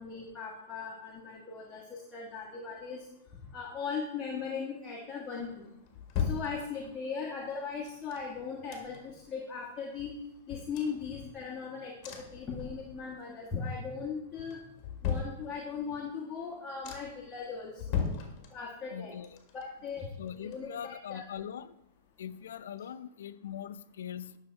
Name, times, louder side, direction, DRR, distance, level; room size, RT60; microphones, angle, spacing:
voice 1, 0.0-3.0 3.5-5.7 6.2-10.1 10.5-14.6 15.0-18.1 18.5-19.1 19.8-21.2, left 5 dB, 15° left, -2 dB, 1.4 m, -38 dB
Sigh, 5.1-5.8, left 7 dB, 30° right, 3.2 m, -54 dB
sound 1, 5.4-7.1 7.9-9.3 9.6-9.7 10.0-11.6 12.0-13.2 13.5-14.0 14.5-15.9 16.4-16.5 16.8-17.3 17.7-18.9 19.2-21.1 21.4-21.5, left 7 dB, 35° left, 1.6 m, -38 dB
voice 2, 18.9-19.4 20.2-21.7 22.2-24.4, left 9 dB, 80° left, 14 dB, 0.5 m, -41 dB
9.7 x 6.4 x 4.4 m, 0.82 s
hypercardioid pair, 150°, 0 cm